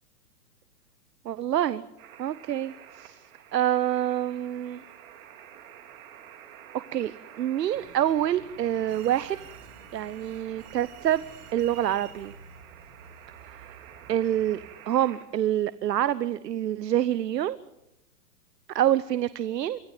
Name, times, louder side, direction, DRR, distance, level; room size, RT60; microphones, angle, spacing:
voice 1, 1.2-1.8 2.2-3.2 3.5-4.8 6.7-9.4 9.9-11.2 11.5-12.3 14.1-14.6 14.9-17.6 18.7-19.8, right 11 dB, 85° right, 16 dB, 1.0 m, -26 dB
sound 1, 2.0-15.3, right 10 dB, 55° right, 3.2 m, -49 dB
sound 2, 7.7-14.7, right 5 dB, 35° right, 5.3 m, -51 dB
25.0 x 15.5 x 9.3 m, 0.87 s
hypercardioid pair, 140°, 48 cm